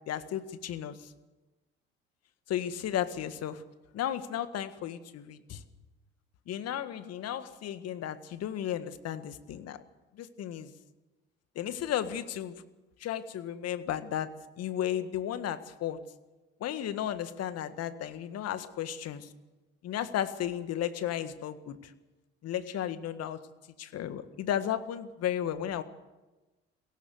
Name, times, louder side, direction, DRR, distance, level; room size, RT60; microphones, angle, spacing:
voice 1, 0.1-1.1 2.5-3.6 3.9-5.6 6.5-9.8 10.1-10.7 11.5-12.6 13.0-14.3 14.6-16.0 16.6-19.3 19.8-21.9 22.4-23.4 23.8-25.8, left 10 dB, 55° left, 11 dB, 1.7 m, -34 dB
22.5 x 17.5 x 8.0 m, 1.1 s
hypercardioid pair, 60°, 30 cm